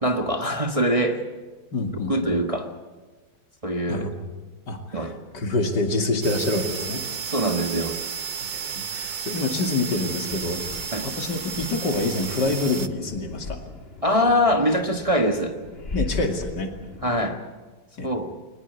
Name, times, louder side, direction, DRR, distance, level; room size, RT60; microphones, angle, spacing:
voice 1, 0.0-1.2 2.1-2.7 3.6-4.1 4.9-5.5 7.2-8.0 10.9-11.1 14.0-15.6 17.0-17.4 18.0-18.3, equal, 20° right, 5 dB, 1.4 m, -23 dB
voice 2, 1.7-2.3 3.9-4.1 4.7-5.1 5.3-7.0 8.5-13.6 15.9-16.7 18.0-18.1, left 2 dB, 65° left, 5 dB, 3.1 m, -27 dB
sound 1, 6.2-12.9, right 6 dB, 40° right, 0.6 m, -33 dB
sound 2, 10.3-17.3, left 3 dB, 30° left, 2.3 m, -38 dB
22.5 x 20.0 x 8.3 m, 1.4 s
omnidirectional pair, 2.0 m